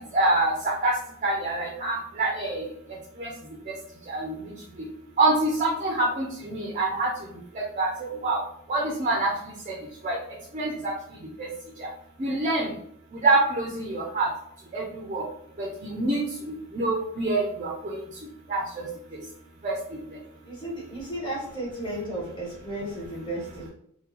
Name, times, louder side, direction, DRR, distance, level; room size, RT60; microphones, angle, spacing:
voice 1, 0.1-0.9 1.2-2.6 3.2-3.3 4.1-4.4 5.2-7.1 7.8-7.9 8.2-8.4 8.7-9.3 9.7-9.8 10.0-10.2 10.5-10.9 11.4-11.5 12.2-12.7 13.2-14.3 14.7-15.2 15.6-16.2 16.5-18.0 18.5-18.6 19.6-19.7, right 2 dB, 35° right, -1 dB, 0.5 m, -25 dB
voice 2, 20.4-23.7, right 1 dB, 20° left, -6 dB, 1.4 m, -34 dB
3.7 x 2.1 x 2.9 m, 0.71 s
head